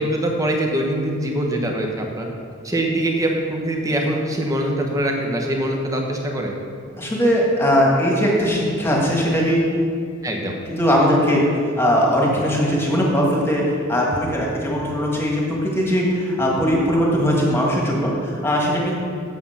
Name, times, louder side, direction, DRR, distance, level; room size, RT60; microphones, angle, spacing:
voice 1, 0.0-2.3 2.6-6.5 10.2-10.6, right 1 dB, 15° right, 1 dB, 1.0 m, -23 dB
voice 2, 7.0-9.7 10.7-11.4 11.8-19.0, equal, 10° left, -3 dB, 1.7 m, -19 dB
8.7 x 7.2 x 5.7 m, 2.3 s
head